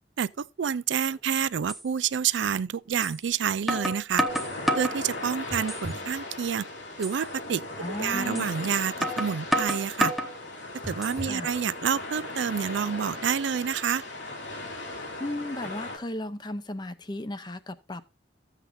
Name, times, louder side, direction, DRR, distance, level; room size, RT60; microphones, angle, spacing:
voice 1, 0.2-4.3 4.8-6.6 7.0-10.1 10.9-14.0, right 7 dB, 85° right, 0.4 m, -28 dB
sound 1, 1.1-1.2 1.7-1.8 3.0-3.2 3.7-5.0 5.5-6.0 6.4-6.5 7.0-7.2 8.3-8.5 9.0-10.3 10.8-11.4, equal, ahead, 1.0 m, -29 dB
sound 2, 4.3-16.0, left 2 dB, 90° left, 2.9 m, -38 dB
voice 2, 7.8-8.5 11.2-11.5 15.2-18.0, left 1 dB, 25° left, 0.7 m, -35 dB
14.0 x 8.1 x 2.7 m
head